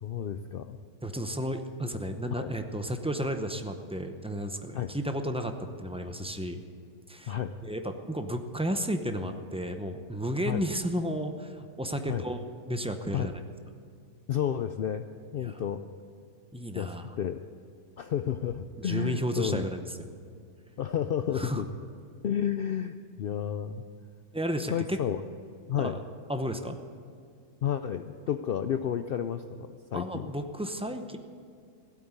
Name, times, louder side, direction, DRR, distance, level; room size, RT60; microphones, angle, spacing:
voice 1, 0.0-0.8 2.3-2.5 4.7-4.9 7.3-7.5 10.5-10.6 12.1-12.2 13.1-13.3 14.3-15.1 15.3-15.8 16.7-17.4 18.0-19.6 20.8-21.7 22.2-23.8 24.7-25.2 25.7-26.0 27.6-30.3, left 9 dB, 80° left, 9 dB, 0.5 m, -31 dB
voice 2, 1.0-6.6 7.1-7.4 7.6-12.4 12.7-13.3 15.4-15.6 16.5-17.1 18.8-20.1 21.3-21.6 24.3-25.0 25.8-26.0 26.3-26.8 29.9-31.2, equal, 10° right, 6 dB, 0.3 m, -33 dB
16.0 x 8.5 x 9.7 m, 2.3 s
omnidirectional pair, 1.6 m